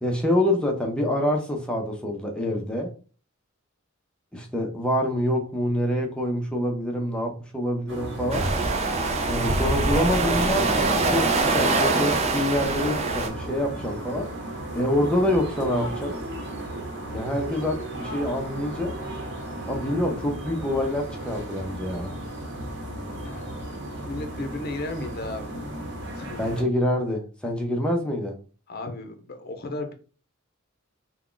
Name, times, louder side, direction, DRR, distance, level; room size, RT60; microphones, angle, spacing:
voice 1, 0.0-2.9 4.3-8.5 9.2-14.3 14.7-16.2 17.1-18.9 19.7-22.1 26.4-28.4, left 1 dB, 5° left, 0.7 m, -26 dB
sound 1, 7.9-26.6, right 1 dB, 60° right, 1.1 m, -35 dB
sound 2, 8.3-13.3, right 3 dB, 30° right, 0.5 m, -23 dB
voice 2, 23.2-23.6 24.0-25.6 26.1-26.7 28.7-29.9, left 2 dB, 50° left, 0.7 m, -35 dB
3.5 x 2.3 x 3.8 m
head